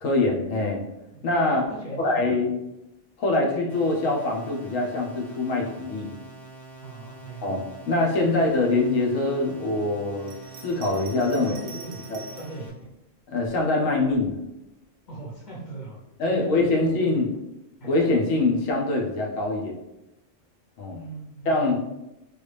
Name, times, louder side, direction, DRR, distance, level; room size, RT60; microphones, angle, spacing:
voice 1, 0.0-0.8 1.2-1.7 2.0-2.6 3.2-6.1 7.4-10.3 10.6-11.5 12.1-12.2 13.3-14.3 16.2-17.3 17.9-19.8 20.8-21.0 21.5-21.8, left 2 dB, 90° left, -1 dB, 1.1 m, -24 dB
voice 2, 1.7-2.2 6.8-7.5 11.3-12.0 12.3-12.9 15.1-16.9 17.8-17.9 20.9-21.8, right 2 dB, 40° left, -5 dB, 0.9 m, -40 dB
sound 1, 3.7-12.7, right 3 dB, ahead, 0.4 m, -45 dB
Bell, 10.2-12.6 13.4-14.3, right 5 dB, 65° right, 0.7 m, -45 dB
3.2 x 2.3 x 3.2 m, 0.94 s
omnidirectional pair, 1.3 m